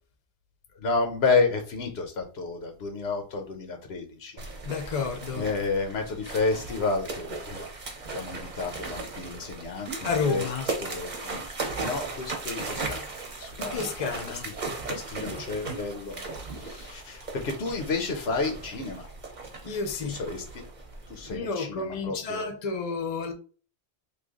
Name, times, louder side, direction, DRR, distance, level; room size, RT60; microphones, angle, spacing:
voice 1, 0.8-4.4 5.3-7.6 8.1-10.4 10.8-11.4 11.8-13.0 13.4-13.9 14.3-14.4 14.9-16.2 16.5-19.1 20.1-20.4 21.1-22.5, left 4 dB, 85° left, 1.1 m, -30 dB
sound 1, 4.4-21.4, right 3 dB, 50° right, 0.9 m, -37 dB
voice 2, 4.6-5.5 10.0-10.7 13.6-14.5 19.6-20.2 21.3-23.3, left 5 dB, 40° left, 0.7 m, -30 dB
3.2 x 2.3 x 3.6 m
omnidirectional pair, 1.0 m